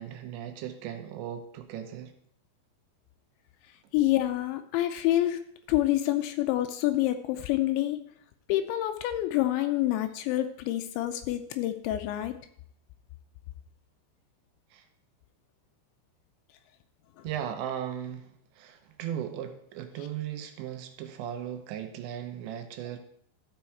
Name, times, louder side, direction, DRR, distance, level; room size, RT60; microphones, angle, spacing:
voice 1, 0.0-2.1 14.7-14.9 17.2-23.0, right 10 dB, 80° right, 7 dB, 3.0 m, -37 dB
voice 2, 3.9-5.4 5.7-8.0 8.5-12.3, left 14 dB, 85° left, 8 dB, 2.9 m, -27 dB
13.0 x 5.6 x 4.5 m, 0.64 s
omnidirectional pair, 5.3 m